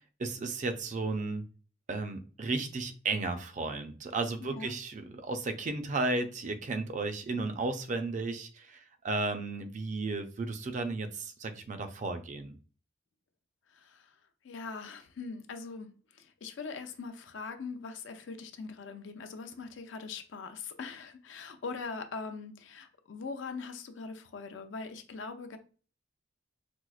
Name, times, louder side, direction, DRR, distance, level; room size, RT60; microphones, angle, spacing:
voice 1, 0.2-1.4 1.9-8.8 9.0-12.5, right 3 dB, 40° right, 0.4 m, -34 dB
voice 2, 4.4-4.7 13.7-14.1 14.4-25.6, left 4 dB, 75° left, 0.5 m, -42 dB
4.4 x 2.0 x 2.3 m
head